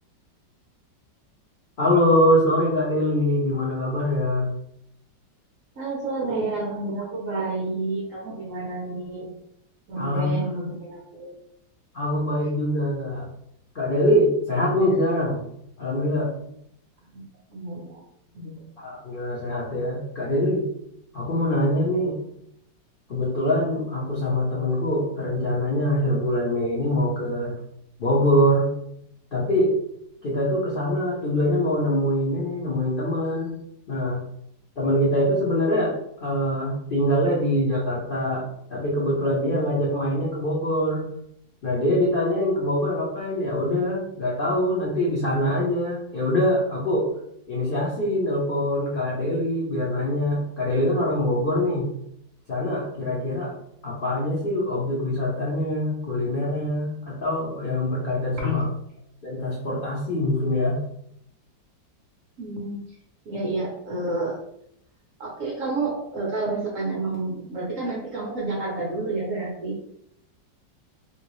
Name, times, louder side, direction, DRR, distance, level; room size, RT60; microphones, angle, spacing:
voice 1, 1.8-4.5 10.0-10.4 11.9-13.3 13.7-15.4 15.8-16.3 18.8-20.7 21.1-22.2 23.1-27.5 28.0-28.7 29.3-29.8 30.2-33.5 33.9-34.2 34.8-38.4 38.7-41.1 41.6-47.1 47.5-51.9 52.5-53.5 53.8-58.7 59.2-60.8, left 1 dB, 90° left, -6 dB, 0.4 m, -24 dB
voice 2, 5.8-9.3 9.9-11.3 17.5-18.0 18.3-18.6 58.4-58.7 62.4-62.8 63.3-64.4 65.2-69.9, right 2 dB, 60° right, -3 dB, 0.9 m, -29 dB
3.0 x 2.8 x 3.0 m, 0.74 s
omnidirectional pair, 2.1 m